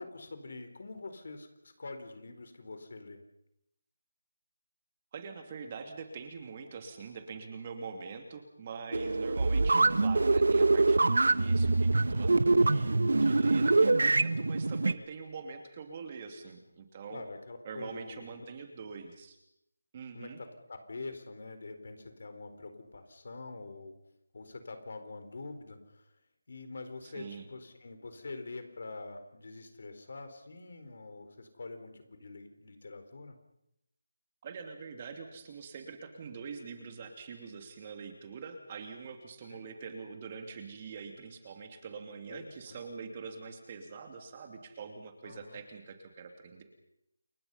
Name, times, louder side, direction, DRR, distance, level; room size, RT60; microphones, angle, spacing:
voice 1, 0.0-3.2 12.7-12.9 17.1-18.3 20.1-23.9 24.3-26.1 26.5-33.4 39.4-39.6 42.3-42.8 45.2-45.6, left 3 dB, 55° left, 8 dB, 4.4 m, -45 dB
voice 2, 5.1-17.2 17.6-19.4 19.9-20.4 27.0-27.5 34.4-46.6, right 5 dB, 25° right, 5 dB, 2.7 m, -44 dB
sound 1, 8.9-14.9, right 3 dB, 75° right, 1.1 m, -25 dB
29.0 x 22.5 x 5.7 m, 0.81 s
figure-of-eight pair, 170°, 0 cm